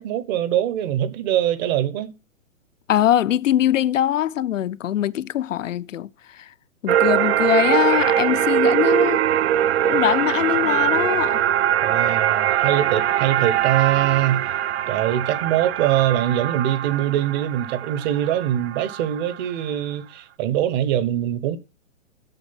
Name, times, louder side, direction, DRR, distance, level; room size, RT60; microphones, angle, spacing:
voice 1, 0.0-2.1 11.8-14.5 14.9-21.6, right 11 dB, 35° right, 1.0 m, -23 dB
voice 2, 2.9-6.5 6.8-9.2 9.8-11.4, left 11 dB, 70° left, 0.6 m, -22 dB
sound 1, 6.9-19.5, right 11 dB, 50° right, 0.5 m, -22 dB
9.2 x 6.3 x 5.7 m
hypercardioid pair, 130°, 40 cm